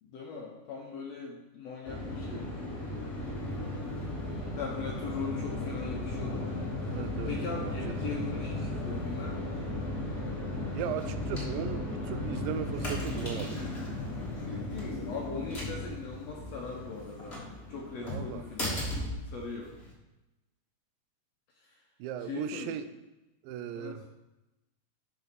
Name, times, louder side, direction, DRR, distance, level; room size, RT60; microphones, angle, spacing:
voice 1, 0.0-2.5 4.6-9.4 14.4-18.8 19.3-19.8 21.6-21.8 22.3-22.7 23.7-24.1, left 4 dB, 70° left, -1 dB, 1.6 m, -40 dB
sound 1, 1.8-19.9, left 1 dB, 40° left, 0.9 m, -36 dB
voice 2, 6.9-7.3 7.6-7.9 10.7-13.6 18.0-18.4 22.0-22.9 23.4-24.1, right 10 dB, 90° right, 11 dB, 2.3 m, -37 dB
11.5 x 4.3 x 4.1 m, 1.0 s
omnidirectional pair, 3.9 m